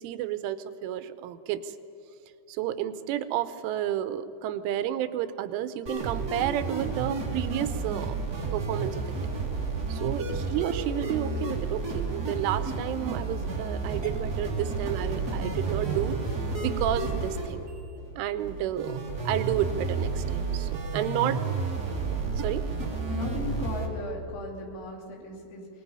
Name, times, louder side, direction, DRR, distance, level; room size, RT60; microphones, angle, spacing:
voice 1, 0.0-1.7 2.5-8.1 8.5-9.3 9.9-16.2 16.6-17.7 18.2-19.0 19.3-21.4 22.4-22.7, right 11 dB, 85° right, 12 dB, 3.2 m, -31 dB
sound 1, 5.8-23.9, right 4 dB, 30° right, 1.9 m, -31 dB
voice 2, 23.1-25.7, left 2 dB, 70° left, 0 dB, 5.1 m, -37 dB
26.0 x 19.5 x 5.5 m, 2.7 s
omnidirectional pair, 5.5 m